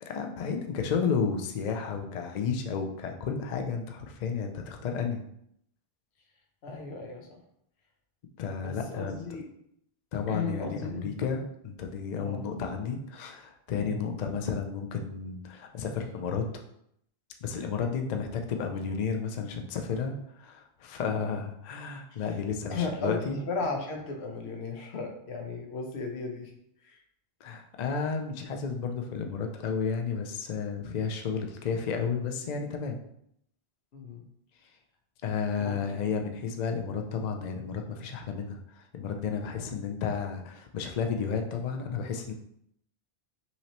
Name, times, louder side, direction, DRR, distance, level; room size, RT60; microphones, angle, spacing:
voice 1, 0.0-5.2 8.4-9.2 10.1-16.4 17.4-23.4 27.4-33.0 35.2-42.3, left 6 dB, 50° left, 4 dB, 0.6 m, -32 dB
voice 2, 6.6-7.4 8.6-9.5 10.3-11.1 12.2-12.5 13.8-14.1 22.1-22.4 22.7-26.6 26.8-27.0 33.9-34.2 35.6-36.1 39.6-39.8, left 4 dB, 85° left, 2 dB, 1.1 m, -36 dB
5.6 x 3.1 x 2.9 m, 0.72 s
omnidirectional pair, 1.1 m